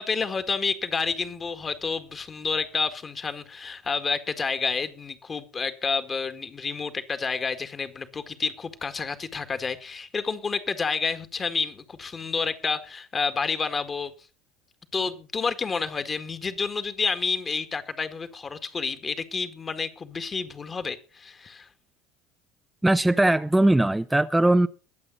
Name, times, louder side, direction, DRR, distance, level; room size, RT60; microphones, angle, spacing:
voice 1, 0.0-14.1 14.9-21.7, left 5 dB, 30° left, 1.9 m, -29 dB
voice 2, 22.8-24.7, right 1 dB, 10° right, 0.6 m, -20 dB
22.5 x 7.9 x 3.9 m
hypercardioid pair, 65°, 0 cm